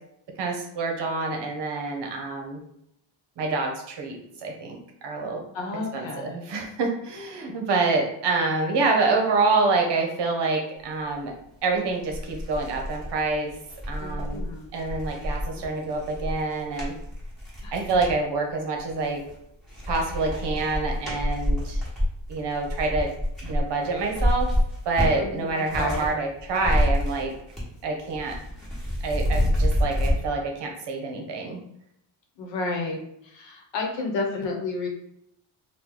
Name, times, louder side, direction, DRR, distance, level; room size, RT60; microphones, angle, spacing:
voice 1, 0.4-2.6 3.4-5.4 5.9-11.3 11.6-13.5 13.9-14.4 14.7-16.9 17.7-19.2 19.9-21.8 22.3-23.1 23.4-24.5 24.8-27.3 27.8-28.4 29.0-31.6, right 3 dB, 55° right, 2 dB, 0.8 m, -27 dB
voice 2, 5.5-6.4 14.0-14.7 15.6-15.7 17.6-17.7 25.2-26.1 32.4-34.9, left 3 dB, 65° left, 1 dB, 1.0 m, -32 dB
sound 1, 11.5-11.6 12.0-18.2 18.8-19.4 19.7-26.1 26.4-27.8 28.0-30.1, equal, ahead, 1.3 m, -28 dB
3.0 x 2.3 x 3.7 m, 0.76 s
cardioid pair, 130°, 48 cm